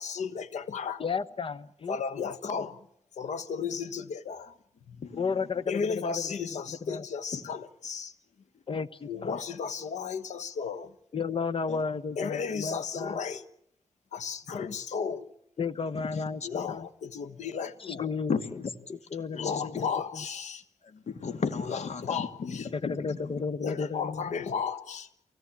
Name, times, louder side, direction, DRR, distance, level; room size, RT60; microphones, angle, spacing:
voice 1, 0.0-1.0 1.9-2.9 3.1-4.5 4.9-5.0 5.7-8.1 9.1-10.9 12.2-13.4 14.1-15.3 16.4-18.1 19.3-20.6 21.7-22.6 23.6-25.1, left 6 dB, 90° left, 14 dB, 1.3 m, -34 dB
voice 2, 1.0-2.0 5.1-7.0 8.7-9.4 11.1-13.2 15.6-16.9 17.8-18.3 19.1-20.2 22.7-24.3, left 5 dB, 50° left, 13 dB, 1.1 m, -33 dB
voice 3, 5.0-5.5 7.3-7.4 9.3-9.4 11.7-11.8 14.5-14.7 15.9-16.5 18.3-18.7 19.3-19.6 20.2-20.3 20.8-23.4, left 5 dB, 75° left, 9 dB, 2.3 m, -35 dB
23.5 x 18.0 x 8.6 m, 0.72 s
cardioid pair, 75°, 12 cm